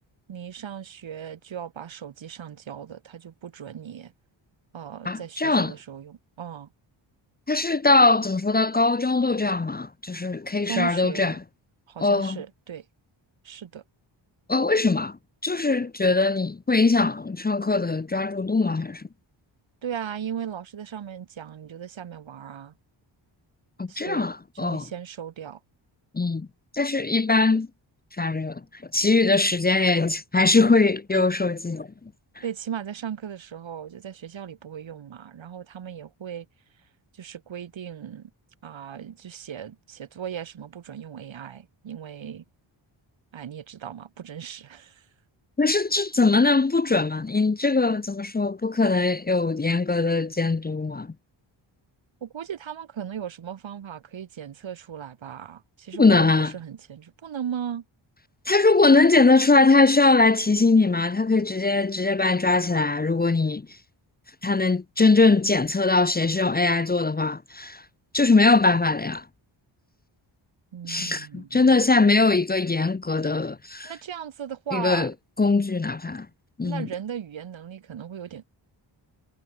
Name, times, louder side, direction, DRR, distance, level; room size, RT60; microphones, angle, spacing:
voice 1, 0.3-4.1 4.7-6.7 10.7-11.4 11.9-12.8 13.4-13.8 19.8-22.7 23.9-24.3 24.5-25.6 31.1-31.2 32.4-36.5 37.1-38.3 38.6-42.4 43.3-45.1 52.2-57.8 70.7-71.7 73.8-75.1 76.6-78.4, right 8 dB, 75° right, 7.0 m, -37 dB
voice 2, 5.0-5.7 7.5-11.3 12.0-12.4 14.5-15.2 15.4-19.0 23.8-24.9 26.1-26.5 26.7-27.7 28.2-31.9 45.6-51.1 56.0-56.5 58.5-63.7 64.4-67.8 68.1-69.2 70.9-73.9 74.7-75.1 75.4-76.3 76.6-76.9, left 3 dB, 20° left, 0.9 m, -21 dB
wide cardioid pair, 130°, 47 cm